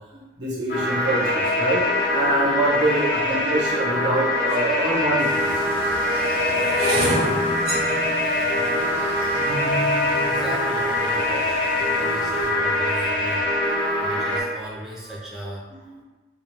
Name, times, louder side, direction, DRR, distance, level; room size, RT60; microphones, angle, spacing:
voice 1, 0.1-5.5 7.8-8.6 8.9-9.3 9.6-9.7 12.5-12.6 15.7-16.0, right 2 dB, 90° right, -5 dB, 0.8 m, -26 dB
sound 1, 0.7-14.4, left 1 dB, 55° left, 0.4 m, -23 dB
sound 2, 4.5-4.6 5.4-11.5 12.2-12.6 12.8-13.2, equal, 60° right, 0.5 m, -29 dB
sound 3, 5.2-12.5, left 1 dB, 90° left, 0.8 m, -43 dB
voice 2, 10.3-13.5 14.0-15.7, equal, 5° right, -6 dB, 0.4 m, -36 dB
2.3 x 2.1 x 2.9 m, 1.2 s
head